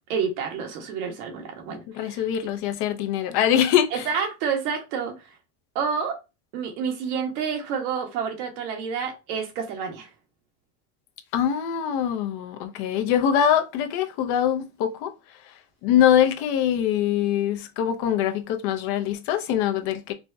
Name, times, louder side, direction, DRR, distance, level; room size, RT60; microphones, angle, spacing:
voice 1, 0.1-2.2 3.9-5.1 5.7-6.2 6.5-10.1, right 6 dB, 80° right, 1.3 m, -29 dB
voice 2, 1.7-4.0 11.3-15.1 15.8-20.1, left 9 dB, 60° left, 0.7 m, -23 dB
4.4 x 2.2 x 2.7 m
supercardioid pair, 115°, 44 cm